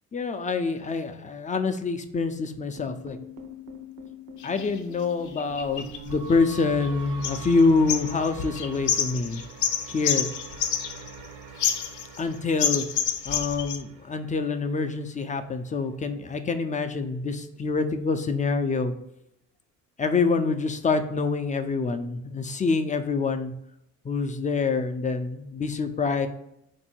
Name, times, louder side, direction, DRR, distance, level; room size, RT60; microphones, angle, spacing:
voice 1, 0.1-3.2 4.4-9.4 9.9-10.3 12.2-12.8 13.3-18.9 20.0-23.5 24.0-26.3, left 4 dB, 25° left, 7 dB, 0.4 m, -26 dB
sound 1, 2.8-15.0, right 3 dB, 80° right, 0.8 m, -43 dB
sound 2, 4.4-4.7 5.4-6.9 7.2-7.6 7.9-11.3 11.6-12.3 12.6-13.8, left 8 dB, 75° left, 0.6 m, -28 dB
3.8 x 2.6 x 4.3 m, 0.79 s
cardioid pair, 90°, 30 cm